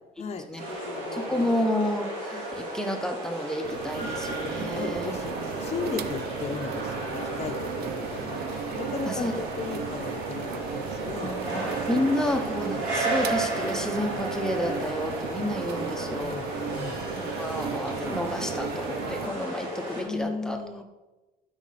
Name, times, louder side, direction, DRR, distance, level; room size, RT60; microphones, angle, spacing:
voice 1, 0.2-1.7 4.5-8.4 8.7-9.3 9.6-11.3 12.3-12.4 16.2-16.5 16.7-17.0 20.0-20.8, left 5 dB, 40° left, 3 dB, 0.9 m, -36 dB
sound 1, 0.6-20.0, right 1 dB, 85° right, 3.5 m, -34 dB
voice 2, 1.1-5.1 9.1-9.4 11.2-16.3 17.1-20.6, left 1 dB, 5° left, 4 dB, 1.1 m, -30 dB
sound 2, 3.6-19.3, right 8 dB, 65° right, 0.6 m, -36 dB
12.5 x 5.3 x 4.2 m, 1.1 s
cardioid pair, 110°, 17 cm